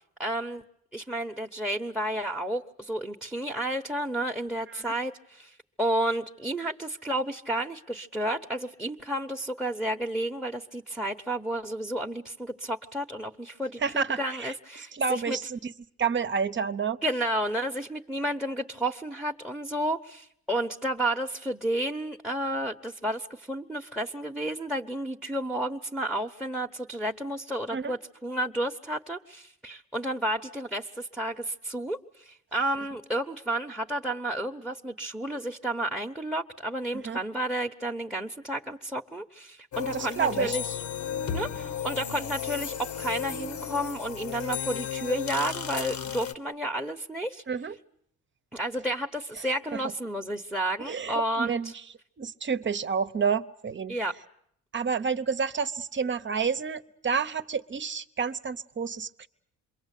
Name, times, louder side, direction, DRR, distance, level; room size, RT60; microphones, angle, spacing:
voice 1, 0.2-0.6 0.9-15.4 17.0-40.6 41.3-47.4 48.5-51.7 53.9-54.1, right 1 dB, ahead, 1 dB, 1.1 m, -31 dB
voice 2, 13.8-14.5 14.9-15.7 16.0-17.0 27.7-27.9 37.0-37.2 39.9-40.6 47.5-47.7 49.7-49.8 50.8-51.7 52.2-54.0 54.7-59.3, right 6 dB, 40° right, 12 dB, 1.0 m, -29 dB
sound 1, 39.7-46.3, left 8 dB, 70° left, 1.4 m, -34 dB
27.5 x 22.5 x 8.4 m, 0.71 s
cardioid pair, 90°, 30 cm